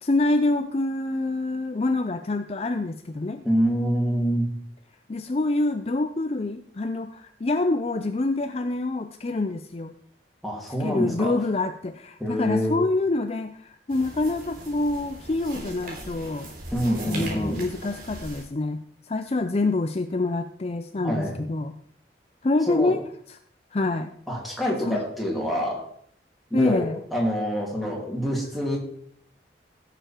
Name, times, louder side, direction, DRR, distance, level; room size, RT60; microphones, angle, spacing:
voice 1, 0.0-3.4 5.1-9.9 10.8-16.5 17.1-21.7 22.4-23.0 23.3-23.4 23.7-24.1 24.9-25.0 26.5-27.0, left 2 dB, 35° left, 9 dB, 0.5 m, -26 dB
voice 2, 3.4-4.5 10.4-11.4 12.2-12.8 16.7-17.6 21.0-21.4 22.7-23.0 24.3-25.9 26.5-28.8, equal, ahead, -2 dB, 2.8 m, -26 dB
sound 1, 13.9-18.4, right 1 dB, 50° right, 3.3 m, -38 dB
16.0 x 6.9 x 4.5 m, 0.64 s
head